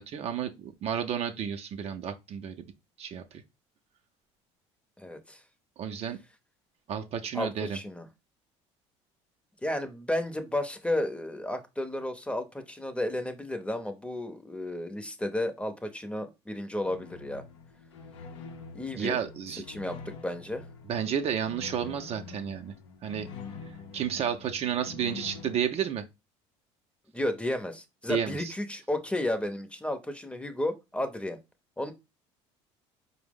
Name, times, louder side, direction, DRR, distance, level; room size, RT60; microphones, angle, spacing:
voice 1, 0.0-2.5 3.0-3.4 5.8-6.2 6.9-7.8 19.0-19.7 20.9-22.7 23.0-23.3 23.9-26.0 28.1-28.5, right 8 dB, 45° right, 0.4 m, -31 dB
voice 2, 5.0-5.4 7.3-8.1 9.6-17.4 18.7-19.2 19.5-20.6 27.1-31.4 31.8-31.9, left 1 dB, 10° left, 0.6 m, -33 dB
sound 1, 16.8-25.6, left 5 dB, 85° left, 0.6 m, -45 dB
4.5 x 2.0 x 3.5 m
hypercardioid pair, 75°, 14 cm